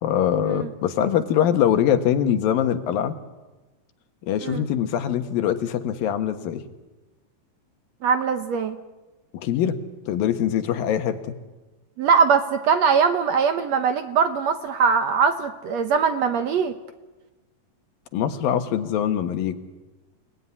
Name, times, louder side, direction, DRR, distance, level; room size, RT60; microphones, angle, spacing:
voice 1, 0.0-3.2 4.2-6.6 9.3-9.8 10.1-11.2 18.1-19.7, left 9 dB, 85° left, 8 dB, 3.2 m, -23 dB
voice 2, 8.0-8.8 12.0-16.7, right 6 dB, 65° right, 8 dB, 1.9 m, -21 dB
29.5 x 18.5 x 9.8 m, 1.2 s
omnidirectional pair, 4.0 m